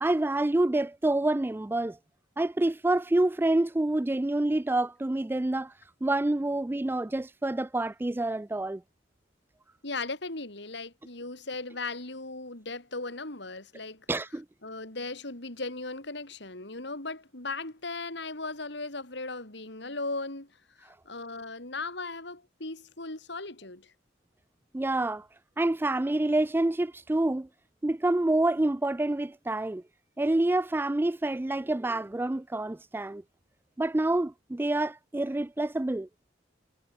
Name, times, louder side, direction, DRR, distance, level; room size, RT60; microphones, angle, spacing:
voice 1, 0.0-2.0 2.4-5.7 6.0-8.8 14.1-14.4 24.7-25.3 25.6-27.5 27.8-29.8 30.2-33.2 33.8-36.1, right 2 dB, 10° right, 0.3 m, -27 dB
voice 2, 9.8-14.1 14.6-20.5 20.8-23.9, left 3 dB, 65° left, 4.0 m, -37 dB
head